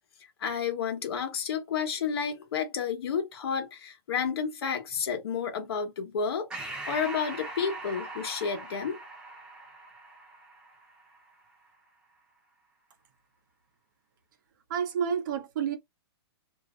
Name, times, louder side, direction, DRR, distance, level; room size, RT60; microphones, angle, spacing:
voice 1, 0.4-6.5 6.9-9.0, left 6 dB, 65° left, 1.0 m, -31 dB
Breathing, 6.5-11.4, right 2 dB, 5° right, 0.6 m, -41 dB
voice 2, 14.7-15.8, right 7 dB, 50° right, 0.8 m, -29 dB
2.6 x 2.0 x 2.3 m
hypercardioid pair, 175°, 14 cm